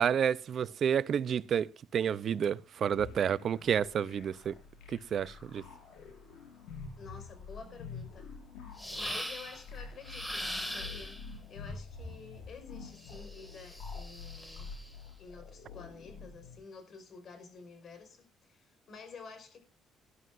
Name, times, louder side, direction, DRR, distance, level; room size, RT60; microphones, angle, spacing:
voice 1, 0.0-4.5 5.1-5.6, right 8 dB, 55° right, 0.6 m, -30 dB
sound 1, 2.9-16.6, left 4 dB, 80° left, 5.8 m, -47 dB
voice 2, 7.0-8.3 8.9-14.7 15.2-19.6, left 4 dB, 50° left, 5.1 m, -50 dB
sound 2, 8.8-9.6 10.0-11.3 13.0-14.9, equal, 5° left, 2.3 m, -41 dB
19.0 x 11.0 x 2.6 m
cardioid pair, 100°, 0 cm